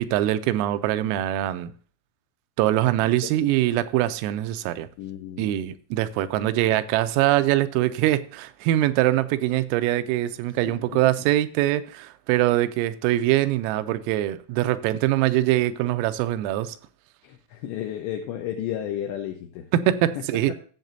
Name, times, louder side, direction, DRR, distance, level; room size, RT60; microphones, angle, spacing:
voice 1, 0.0-1.7 2.6-4.9 5.4-16.8 19.7-20.5, right 14 dB, 85° right, 3.3 m, -23 dB
voice 2, 5.0-5.5 10.6-11.0 17.2-19.7, left 11 dB, 80° left, 2.5 m, -33 dB
15.5 x 7.5 x 2.6 m
omnidirectional pair, 6.0 m